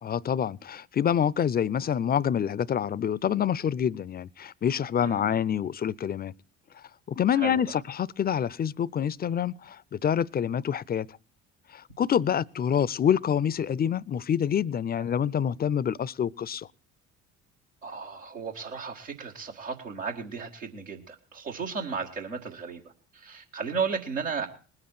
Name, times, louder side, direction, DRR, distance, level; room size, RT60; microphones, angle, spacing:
voice 1, 0.0-6.3 6.8-11.2 11.7-16.7, left 8 dB, 25° left, 0.5 m, -27 dB
voice 2, 5.0-5.3 7.3-7.6 17.8-22.8 23.1-24.5, right 5 dB, 90° right, 1.8 m, -34 dB
20.5 x 7.8 x 4.3 m
figure-of-eight pair, 55°, 38 cm